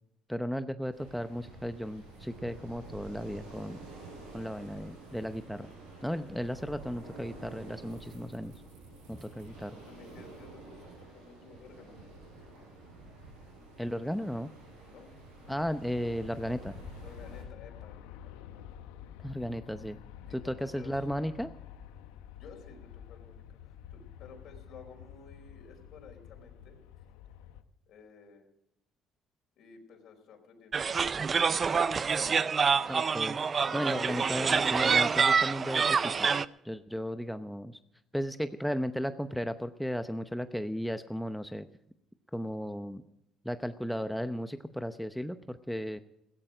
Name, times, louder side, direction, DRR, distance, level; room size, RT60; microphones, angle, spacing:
voice 1, 0.3-3.8 4.3-5.7 6.0-8.5 9.1-9.8 13.8-14.5 15.5-16.7 19.2-20.0 20.3-21.5 32.9-33.4 33.7-36.3 36.6-37.8 38.1-41.7 42.3-43.0 43.4-46.0, equal, ahead, 10 dB, 0.8 m, -35 dB
sound 1, 0.9-17.4, right 2 dB, 85° right, 7.2 m, -49 dB
voice 2, 8.9-9.4 9.9-12.7 14.8-15.1 17.0-18.6 20.3-21.1 22.3-26.8 27.9-28.5 29.6-31.2, left 5 dB, 65° left, 2 dB, 4.5 m, -54 dB
Aircraft, 15.4-27.6, left 9 dB, 85° left, 1.0 m, -49 dB
sound 2, 30.7-36.4, right 5 dB, 40° right, 0.6 m, -26 dB
16.0 x 13.5 x 5.0 m, 0.79 s
supercardioid pair, 75°, 0 cm